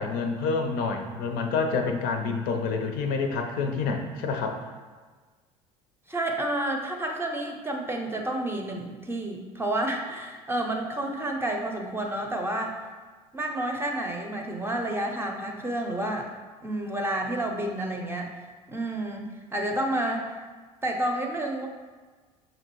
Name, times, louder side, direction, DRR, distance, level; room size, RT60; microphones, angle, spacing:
voice 1, 0.0-4.6, left 4 dB, 55° left, 4 dB, 0.5 m, -28 dB
voice 2, 6.1-12.8 13.3-16.3 16.6-20.3 20.8-21.7, right 1 dB, 10° right, 1 dB, 0.6 m, -30 dB
5.9 x 2.6 x 3.0 m, 1.4 s
figure-of-eight pair, 65°, 19 cm